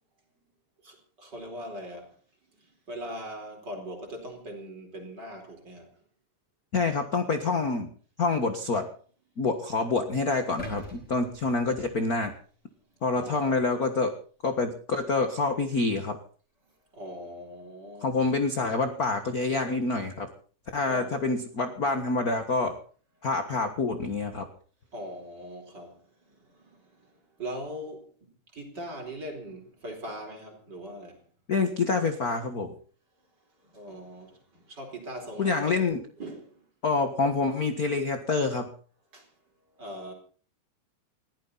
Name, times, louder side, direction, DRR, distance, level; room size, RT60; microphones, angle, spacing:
voice 1, 0.8-2.1 2.6-5.9 13.2-13.5 16.9-18.3 20.9-21.3 24.9-26.0 26.4-27.1 27.4-31.2 33.6-35.7 36.2-36.6 39.1-39.3 39.8-40.1, equal, 30° right, 4.7 m, -41 dB
voice 2, 6.7-7.9 8.2-8.9 9.4-12.3 13.0-14.2 14.4-16.2 18.0-20.3 20.7-22.8 23.2-24.5 31.5-32.7 35.4-36.0 36.8-38.7, left 3 dB, 50° left, 1.1 m, -27 dB
sound 1, 10.6-12.7 13.2-13.4, equal, 10° left, 4.5 m, -44 dB
21.5 x 16.0 x 4.1 m
omnidirectional pair, 4.0 m